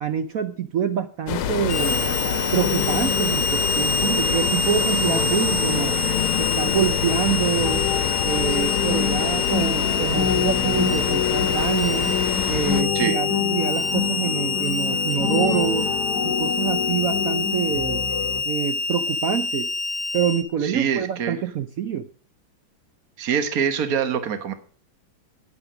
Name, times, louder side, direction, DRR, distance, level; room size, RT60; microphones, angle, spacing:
voice 1, 0.0-2.2 2.5-6.0 6.4-7.9 8.2-12.1 12.5-15.9 16.2-18.0 18.5-19.7 20.1-22.1, right 8 dB, 80° right, 10 dB, 0.7 m, -26 dB
sound 1, 1.3-12.8, left 9 dB, 80° left, 1.8 m, -27 dB
Harmonica, 1.7-20.4, left 4 dB, 30° left, 3.0 m, -26 dB
sound 2, 1.8-18.4, left 6 dB, 50° left, 2.1 m, -28 dB
voice 2, 20.6-21.4 23.2-24.5, right 7 dB, 45° right, 10 dB, 1.6 m, -24 dB
10.0 x 9.9 x 5.1 m, 0.42 s
omnidirectional pair, 2.3 m